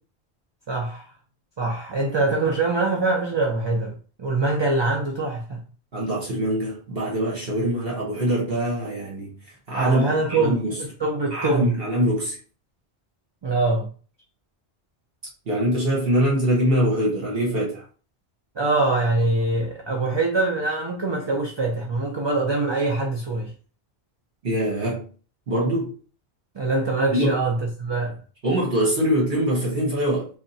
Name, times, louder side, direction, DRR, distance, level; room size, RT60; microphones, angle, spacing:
voice 1, 0.7-1.1 1.6-5.6 9.7-11.8 13.4-13.9 18.6-23.5 26.5-28.2, right 3 dB, 35° right, 0.4 m, -24 dB
voice 2, 5.9-9.3 9.7-10.7 11.3-12.4 15.5-17.8 24.4-25.0 25.5-25.9 27.1-27.3 28.4-30.3, equal, 60° right, 1.4 m, -23 dB
3.5 x 2.2 x 4.1 m
omnidirectional pair, 1.1 m